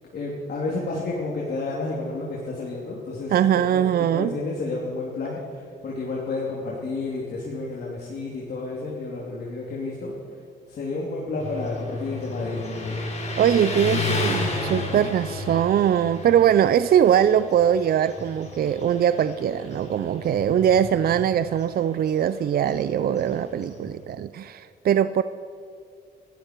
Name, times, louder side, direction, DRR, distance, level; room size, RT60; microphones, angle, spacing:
voice 1, 0.1-3.8 4.1-13.1, left 3 dB, 55° left, -4 dB, 3.1 m, -31 dB
voice 2, 3.3-4.4 13.4-25.2, right 9 dB, 50° right, 14 dB, 0.5 m, -21 dB
Motorcycle, 11.4-24.0, left 2 dB, 35° left, 3.6 m, -33 dB
21.0 x 14.0 x 4.6 m, 2.3 s
cardioid pair, 90°, 20 cm